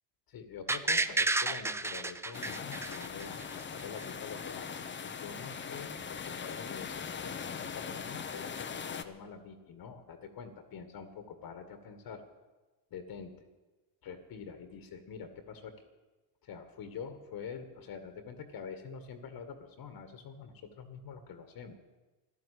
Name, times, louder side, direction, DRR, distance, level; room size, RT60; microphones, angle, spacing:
voice 1, 0.3-12.2 12.9-13.3 14.0-15.7 16.4-21.9, left 6 dB, 45° left, 9 dB, 1.8 m, -46 dB
sound 1, 0.7-3.6 4.0-4.1, right 2 dB, 5° right, 0.4 m, -31 dB
sound 2, 2.3-9.0, left 6 dB, 25° left, 1.0 m, -40 dB
13.0 x 12.0 x 8.4 m, 1.2 s
supercardioid pair, 85°, 49 cm